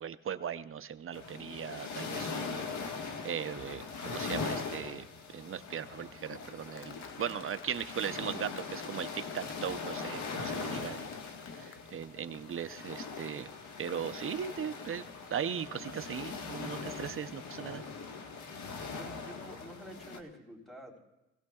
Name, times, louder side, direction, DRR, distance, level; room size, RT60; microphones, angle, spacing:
voice 1, 0.0-2.7 3.2-5.1 5.3-11.1 11.6-13.5 13.8-15.0 15.3-17.8, right 8 dB, 45° right, 12 dB, 0.6 m, -38 dB
sound 1, 1.1-20.2, left 4 dB, 75° left, 1.4 m, -41 dB
Applause, 6.8-12.7, left 6 dB, 45° left, 0.8 m, -52 dB
voice 2, 19.0-21.0, equal, ahead, -1 dB, 3.7 m, -48 dB
23.0 x 17.0 x 2.3 m, 0.95 s
cardioid pair, 90°, 30 cm